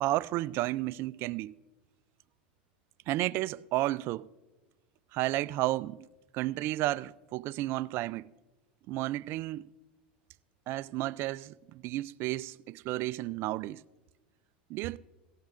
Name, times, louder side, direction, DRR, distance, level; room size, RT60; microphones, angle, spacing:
voice 1, 0.0-1.5 3.1-4.3 5.1-6.1 6.3-8.3 8.9-9.7 10.7-13.8 14.7-15.0, right 17 dB, 50° right, 0.3 m, -32 dB
18.5 x 15.5 x 2.5 m
hypercardioid pair, 105°, 5 cm